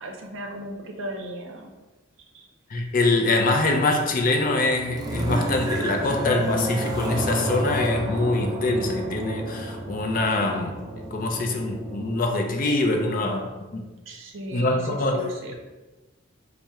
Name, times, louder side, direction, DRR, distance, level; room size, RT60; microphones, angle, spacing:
voice 1, 0.0-1.7 2.3-2.4 14.1-14.8 15.1-15.5, equal, 80° right, 3 dB, 0.6 m, -36 dB
voice 2, 2.7-10.8 11.1-13.8 14.5-15.3, left 2 dB, 45° left, 3 dB, 0.5 m, -24 dB
sound 1, 3.6-12.1, right 1 dB, 20° right, 0.4 m, -31 dB
4.2 x 2.1 x 3.5 m, 1.2 s
head